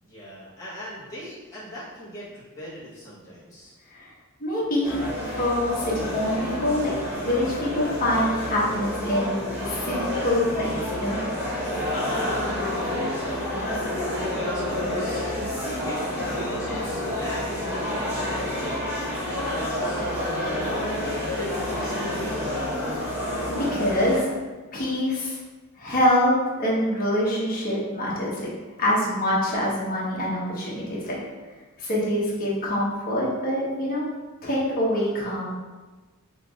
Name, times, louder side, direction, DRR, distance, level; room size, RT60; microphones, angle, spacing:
voice 1, 0.0-3.7 12.0-13.6 14.1-15.3 15.8-17.5 17.7-20.0 20.6-22.5, equal, 15° left, -11 dB, 1.1 m, -40 dB
voice 2, 4.4-5.0 5.4-6.9 7.2-9.3 9.7-11.2 22.9-23.1 23.5-24.3 24.7-25.4 25.8-26.3 26.6-28.5 28.8-31.2 31.8-34.1 34.4-35.4, left 1 dB, 40° left, -6 dB, 1.2 m, -25 dB
sound 1, 4.8-24.2, left 1 dB, 10° right, 1.5 m, -29 dB
5.6 x 3.1 x 2.4 m, 1.3 s
head